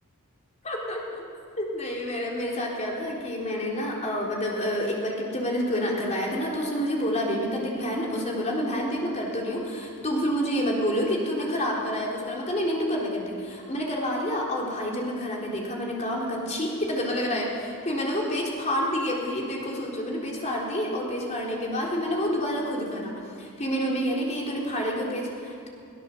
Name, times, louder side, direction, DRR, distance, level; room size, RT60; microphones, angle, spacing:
voice 1, 0.6-1.0 1.6-23.1 23.4-25.7, equal, 30° left, -3 dB, 3.8 m, -28 dB
22.0 x 16.5 x 7.4 m, 2.5 s
head